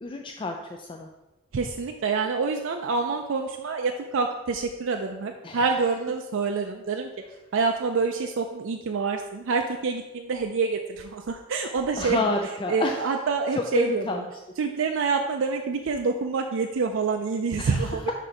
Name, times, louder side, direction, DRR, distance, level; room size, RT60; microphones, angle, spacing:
voice 1, 0.0-1.1 5.4-5.6 12.0-13.1 13.5-14.2 17.6-18.1, left 2 dB, 25° left, 3 dB, 0.3 m, -29 dB
voice 2, 1.5-7.1 7.5-12.2 12.7-14.2 14.6-18.1, right 4 dB, 65° right, 4 dB, 0.4 m, -27 dB
5.2 x 4.4 x 4.9 m, 1.1 s
head